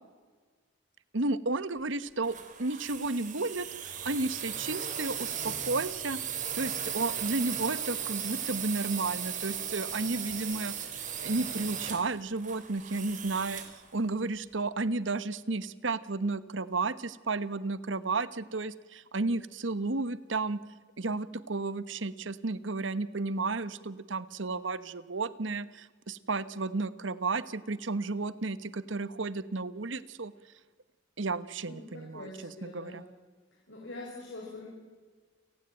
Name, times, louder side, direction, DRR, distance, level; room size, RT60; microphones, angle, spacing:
voice 1, 1.1-6.2 6.5-13.6 13.9-20.6 21.0-30.3 31.2-33.0, right 3 dB, 75° right, 15 dB, 1.2 m, -33 dB
sound 1, 2.2-13.8, right 8 dB, 40° right, 3.5 m, -37 dB
voice 2, 31.7-33.0 33.7-34.7, left 2 dB, 70° left, -2 dB, 6.3 m, -44 dB
29.5 x 17.5 x 9.1 m, 1.5 s
head